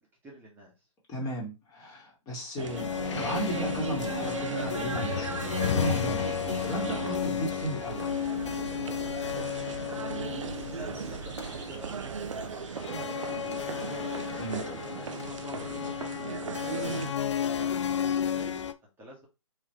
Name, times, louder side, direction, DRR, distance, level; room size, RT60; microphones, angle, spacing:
voice 1, 0.2-0.9 6.6-6.9 9.4-10.4 10.7-16.3 16.8-19.3, equal, 10° right, -3 dB, 1.5 m, -49 dB
voice 2, 1.1-6.3 6.6-8.1 14.4-14.6, right 1 dB, 20° left, -3 dB, 2.0 m, -35 dB
sound 1, 2.6-18.7, left 9 dB, 60° left, 0.5 m, -33 dB
sound 2, 2.6-12.4, right 4 dB, 30° right, 1.4 m, -48 dB
sound 3, 2.6-17.1, right 7 dB, 65° right, 0.7 m, -37 dB
4.9 x 3.2 x 3.2 m, 0.26 s
figure-of-eight pair, 125°, 17 cm